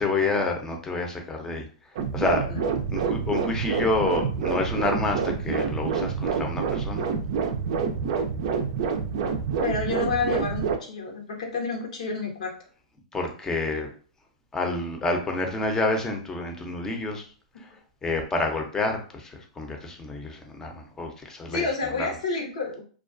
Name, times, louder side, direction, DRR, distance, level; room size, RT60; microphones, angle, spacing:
voice 1, 0.0-1.6 2.1-2.5 2.9-7.0 13.1-13.9 14.5-17.2 18.0-21.7, left 2 dB, 15° left, 3 dB, 0.6 m, -28 dB
sound 1, 2.0-10.8, right 6 dB, 60° right, 0.4 m, -27 dB
voice 2, 9.6-12.5 21.5-22.8, left 4 dB, 80° left, 1 dB, 0.9 m, -29 dB
2.3 x 2.2 x 2.5 m, 0.41 s
hypercardioid pair, 125°, 4 cm